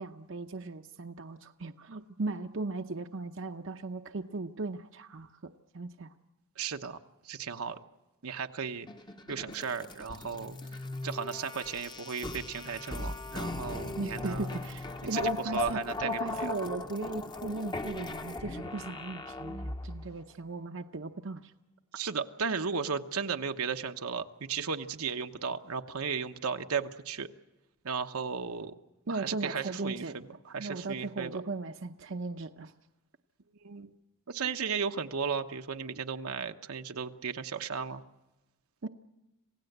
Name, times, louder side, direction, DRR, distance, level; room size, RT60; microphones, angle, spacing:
voice 1, 0.0-6.1 14.0-21.5 29.1-30.2 30.6-32.7 38.8-38.9, right 3 dB, 60° right, 7 dB, 0.8 m, -37 dB
voice 2, 6.6-7.0 7.2-7.8 8.2-8.9 9.3-10.6 11.0-14.5 15.1-16.5 22.0-27.3 27.8-28.7 29.1-31.4 33.6-33.9 34.3-38.0, right 6 dB, 85° right, 6 dB, 1.0 m, -35 dB
sound 1, 8.9-20.1, left 3 dB, 20° left, 0.8 m, -38 dB
27.0 x 16.5 x 8.0 m, 1.0 s
head